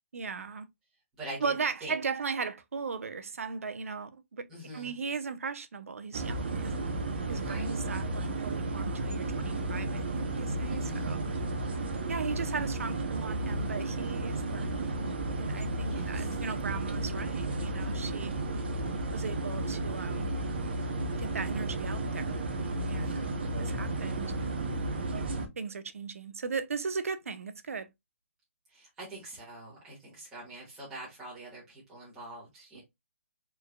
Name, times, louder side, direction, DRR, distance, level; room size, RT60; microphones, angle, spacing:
voice 1, 0.1-0.7 1.4-4.5 4.7-6.7 7.3-11.2 12.1-15.1 15.3-18.3 19.1-20.3 21.1-22.3 22.9-23.2 23.6-24.5 25.6-27.9, right 5 dB, 75° right, 0.7 m, -37 dB
voice 2, 1.2-1.5 1.8-2.0 4.5-4.9 7.3-7.7 10.7-11.2 15.9-16.4 22.9-23.5 28.7-32.8, right 1 dB, 10° right, 1.6 m, -44 dB
sound 1, 6.1-25.5, right 2 dB, 45° right, 0.9 m, -33 dB
4.4 x 3.3 x 2.2 m
hypercardioid pair, 175°, 7 cm